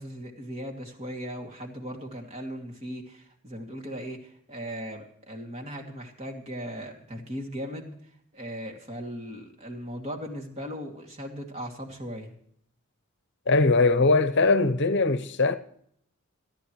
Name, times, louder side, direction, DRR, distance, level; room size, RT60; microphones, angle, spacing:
voice 1, 0.0-7.9 8.3-12.3, equal, 30° right, 2.6 m, -38 dB
voice 2, 13.5-15.6, left 3 dB, 55° left, 0.9 m, -21 dB
28.5 x 11.0 x 3.2 m
head